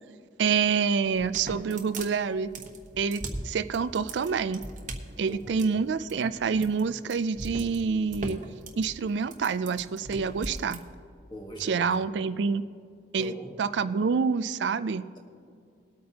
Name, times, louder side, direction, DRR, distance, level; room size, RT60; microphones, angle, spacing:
voice 1, 0.4-2.5 3.0-4.6 5.2-8.4 8.8-10.8 11.6-12.6 13.1-15.1, right 5 dB, 75° right, 12 dB, 0.4 m, -27 dB
sound 1, 1.0-10.8, right 2 dB, 45° right, 1.1 m, -39 dB
voice 2, 5.3-5.8 11.3-11.9 13.1-13.6, equal, 25° left, 2 dB, 1.4 m, -42 dB
20.5 x 8.5 x 2.8 m, 2.3 s
head